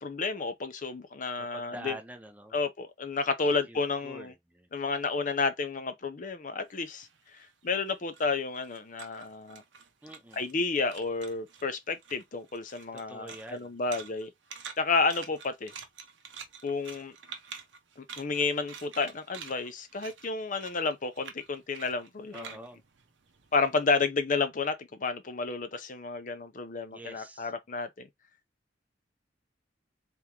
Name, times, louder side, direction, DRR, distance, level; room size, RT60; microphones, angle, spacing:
voice 1, 0.0-2.0 2.5-4.3 4.7-7.1 7.3-9.6 10.3-14.3 14.8-15.7 16.6-17.1 18.0-22.5 23.5-28.1, left 4 dB, 45° left, 0.6 m, -31 dB
voice 2, 1.4-2.6 3.7-4.7 10.0-10.6 12.9-14.0 22.3-22.8 26.9-27.5, right 1 dB, 10° right, 0.6 m, -46 dB
sound 1, 6.7-10.6 10.9-11.7 12.0-23.8, right 6 dB, 90° right, 0.8 m, -48 dB
3.6 x 3.5 x 2.9 m
head